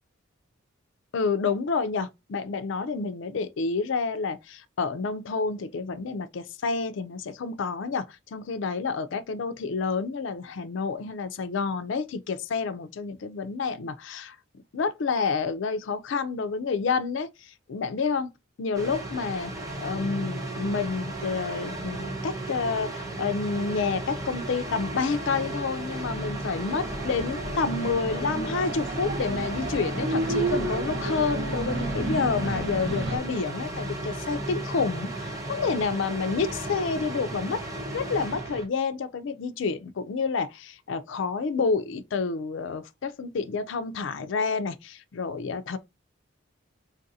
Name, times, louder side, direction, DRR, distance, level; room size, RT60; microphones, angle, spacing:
voice 1, 1.1-14.4 14.7-18.3 18.6-19.5 19.8-37.6 37.9-45.8, left 4 dB, 70° left, 0.4 m, -29 dB
sound 1, 18.7-38.7, right 1 dB, 15° right, 0.7 m, -34 dB
sound 2, 25.9-33.2, right 2 dB, 65° right, 1.1 m, -32 dB
3.9 x 2.5 x 2.6 m
head